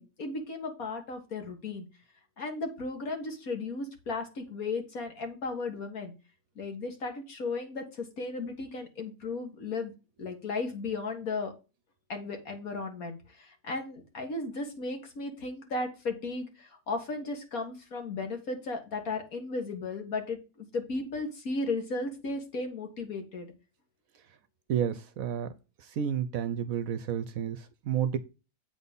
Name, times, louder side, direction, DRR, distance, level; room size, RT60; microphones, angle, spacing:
voice 1, 0.0-1.9 2.4-6.1 6.6-9.9 10.2-11.5 12.1-23.5, left 3 dB, 60° left, 4 dB, 2.2 m, -35 dB
voice 2, 24.7-25.5 25.8-28.2, right 9 dB, 65° right, 13 dB, 1.0 m, -31 dB
8.3 x 4.1 x 5.3 m, 0.30 s
omnidirectional pair, 1.7 m